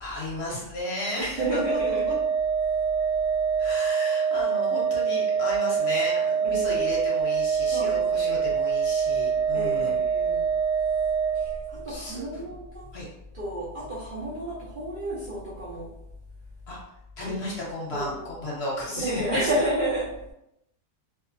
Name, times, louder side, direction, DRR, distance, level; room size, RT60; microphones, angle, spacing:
voice 1, 0.0-2.1 3.6-10.0 11.9-12.4 12.9-13.1 16.7-16.8 17.2-19.5, left 1 dB, 60° left, -5 dB, 1.0 m, -34 dB
voice 2, 1.2-2.1 6.4-7.0 7.7-8.5 9.5-10.5 11.3-12.9 13.3-15.9 17.2-17.4 17.9-18.3 19.0-20.1, right 1 dB, 55° right, -8 dB, 0.6 m, -31 dB
Organ, 1.4-12.0, right 6 dB, 30° left, 0.7 m, -25 dB
2.7 x 2.0 x 2.5 m, 0.84 s
omnidirectional pair, 1.4 m